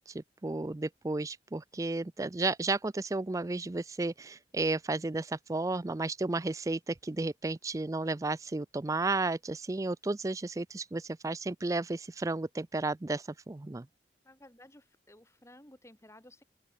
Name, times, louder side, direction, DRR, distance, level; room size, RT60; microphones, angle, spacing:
voice 1, 0.0-13.9, right 2 dB, 20° right, 0.4 m, -33 dB
voice 2, 14.2-16.4, left 1 dB, 15° left, 5.1 m, -55 dB
open air
head